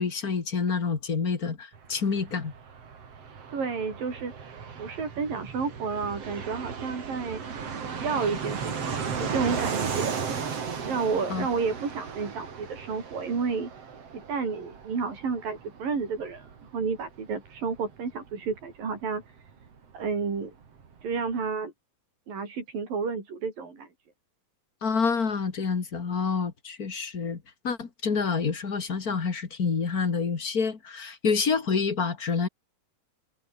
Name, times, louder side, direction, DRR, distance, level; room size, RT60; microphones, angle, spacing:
voice 1, 0.0-2.5 11.3-11.5 24.8-32.5, left 5 dB, 30° left, 2.0 m, -28 dB
Fixed-wing aircraft airplane, 1.7-20.1 20.4-20.5 20.7-21.4, right 6 dB, 50° right, 3.8 m, -36 dB
voice 2, 3.5-4.3 4.8-10.2 10.8-13.7 14.1-19.2 19.9-20.5 21.0-21.7 22.3-23.9, right 5 dB, 85° right, 7.2 m, -31 dB
omnidirectional pair, 3.9 m